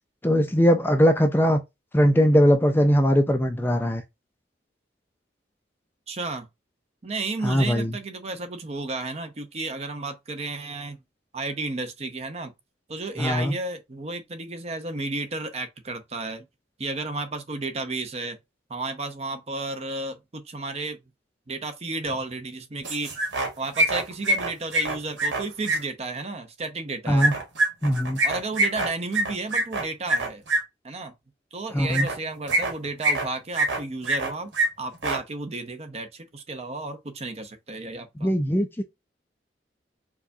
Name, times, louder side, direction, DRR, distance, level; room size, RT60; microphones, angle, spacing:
voice 1, 0.2-1.6 1.9-4.0 7.4-7.9 13.2-13.5 27.1-27.3 27.8-28.2 31.7-32.1 38.2-38.8, equal, 10° left, 0.4 m, -20 dB
voice 2, 6.1-6.5 7.0-11.0 11.3-12.5 12.9-16.4 16.8-18.4 18.7-21.0 21.5-23.1 23.6-27.4 28.2-30.4 30.8-31.1 31.5-34.5 34.8-38.3, right 3 dB, 35° right, 0.6 m, -32 dB
sound 1, 22.8-23.5 23.7-25.8 27.2-30.6 31.9-32.1 32.5-33.2 33.5-34.3 34.5-34.7 34.9-35.2, right 2 dB, 85° right, 1.3 m, -24 dB
4.7 x 2.3 x 2.6 m
head